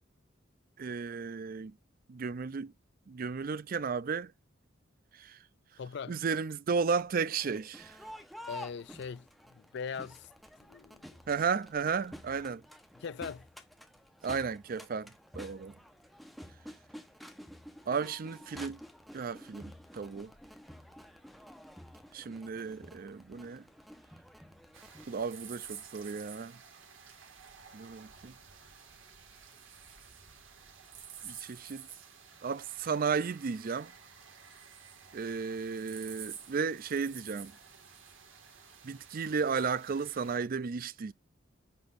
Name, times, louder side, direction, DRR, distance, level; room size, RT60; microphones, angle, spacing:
voice 1, 0.8-1.7 2.1-2.7 3.1-4.3 5.2-5.4 6.1-8.0 11.3-12.6 14.2-15.7 17.9-18.8 19.1-20.3 22.1-23.6 25.1-26.6 27.7-28.3 31.2-31.9 32.4-33.9 35.1-37.5 38.8-41.1, right 5 dB, 45° right, 0.4 m, -34 dB
voice 2, 5.8-6.2 8.5-10.3 10.7-11.2 13.0-13.5, left 6 dB, 60° left, 0.4 m, -41 dB
Crowd, 7.3-25.0, equal, ahead, 1.0 m, -50 dB
sound 1, 24.7-40.4, right 8 dB, 85° right, 2.0 m, -51 dB
10.5 x 6.1 x 2.6 m
head